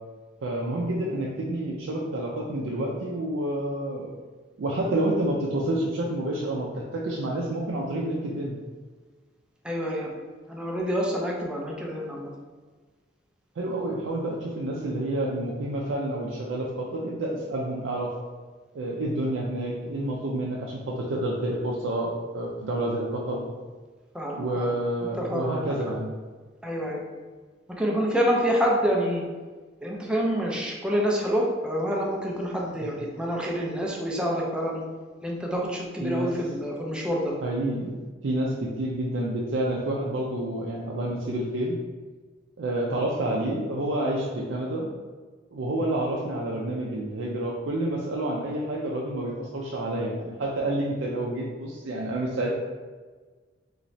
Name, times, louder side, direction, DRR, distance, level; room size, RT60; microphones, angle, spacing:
voice 1, 0.4-4.1 4.6-8.6 13.6-18.1 18.7-23.5 24.4-26.1 36.0-36.3 37.4-41.8 42.6-44.9 45.5-52.5, right 1 dB, 75° right, -3 dB, 0.4 m, -29 dB
voice 2, 9.6-10.1 10.5-12.3 24.1-24.7 25.2-25.7 26.6-27.0 27.8-29.2 29.8-34.8 35.2-37.3, equal, 5° right, -2 dB, 0.5 m, -27 dB
3.1 x 3.0 x 2.6 m, 1.4 s
head